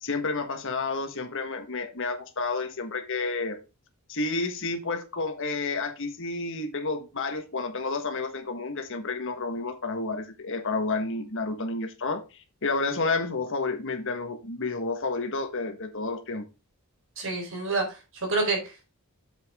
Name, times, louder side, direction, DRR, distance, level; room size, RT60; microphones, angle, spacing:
voice 1, 0.0-3.6 4.1-12.2 12.6-16.4, left 3 dB, 60° left, 1.5 m, -30 dB
voice 2, 17.2-18.9, right 3 dB, 60° right, 4.2 m, -28 dB
7.8 x 7.6 x 3.6 m
head